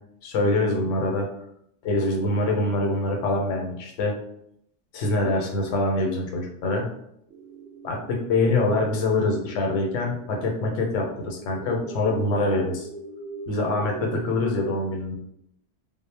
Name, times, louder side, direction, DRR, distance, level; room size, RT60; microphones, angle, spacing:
voice 1, 0.2-1.3 1.8-4.1 4.9-6.9 7.8-12.9 13.5-15.1, left 2 dB, 80° left, 1 dB, 0.9 m, -24 dB
sound 1, 7.3-14.3, right 4 dB, 65° right, 0.7 m, -41 dB
2.0 x 2.0 x 3.2 m, 0.74 s
omnidirectional pair, 1.3 m